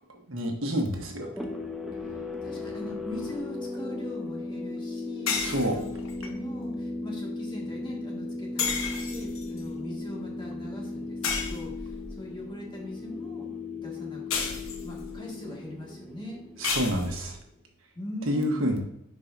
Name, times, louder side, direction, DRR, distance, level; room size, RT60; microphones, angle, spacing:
voice 1, 0.1-1.3 5.3-5.8 16.6-17.4 18.3-18.8, equal, 70° right, 2 dB, 1.3 m, -28 dB
sound 1, 1.2-17.5, left 3 dB, ahead, 0.8 m, -37 dB
voice 2, 2.0-5.9 6.2-13.5 13.8-16.4 18.0-18.8, equal, 25° left, -3 dB, 1.9 m, -41 dB
sound 2, 5.3-6.3 8.6-9.6 11.2-12.1 14.3-15.1 16.6-17.4, left 5 dB, 80° left, 1.1 m, -32 dB
10.5 x 4.8 x 2.7 m, 0.82 s
head